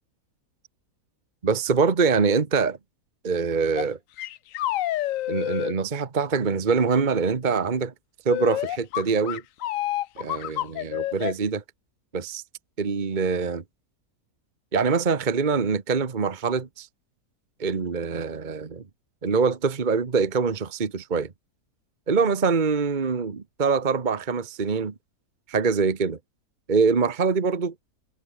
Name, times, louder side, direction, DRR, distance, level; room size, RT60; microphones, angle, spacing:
voice 1, 1.4-2.8 3.2-4.0 5.3-7.9 8.2-9.4 10.2-11.6 12.1-12.4 12.8-13.6 14.7-16.9 17.6-18.8 19.2-21.3 22.1-24.9 25.5-26.2 26.7-27.7, right 5 dB, 35° right, 1.3 m, -24 dB
sound 1, 3.8-3.9 4.2-5.8 8.3-11.3, left 14 dB, 70° left, 0.9 m, -28 dB
omnidirectional pair, 1.6 m